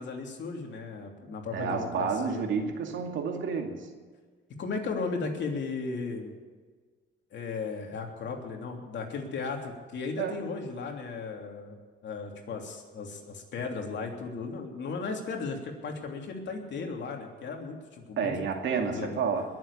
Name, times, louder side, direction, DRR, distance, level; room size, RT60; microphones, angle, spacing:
voice 1, 0.0-2.4 4.6-6.3 7.3-11.8 12.0-18.3 18.7-19.2, left 4 dB, 65° left, 2 dB, 3.1 m, -36 dB
voice 2, 1.5-3.9 10.2-10.4 18.2-19.4, right 6 dB, 75° right, 3 dB, 2.4 m, -30 dB
21.5 x 7.7 x 8.8 m, 1.5 s
cardioid pair, 90°, 20 cm